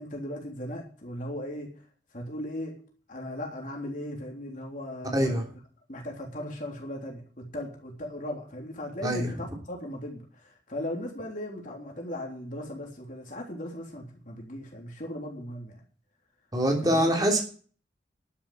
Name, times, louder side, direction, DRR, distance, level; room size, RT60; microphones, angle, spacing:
voice 1, 0.0-1.7 2.1-2.8 3.1-5.4 5.9-10.2 10.7-15.7 16.8-17.1, left 1 dB, 45° left, 0 dB, 3.5 m, -37 dB
voice 2, 5.1-5.4 9.0-9.3 16.5-17.4, equal, 20° right, 1 dB, 3.2 m, -24 dB
11.5 x 7.8 x 7.7 m, 0.41 s
head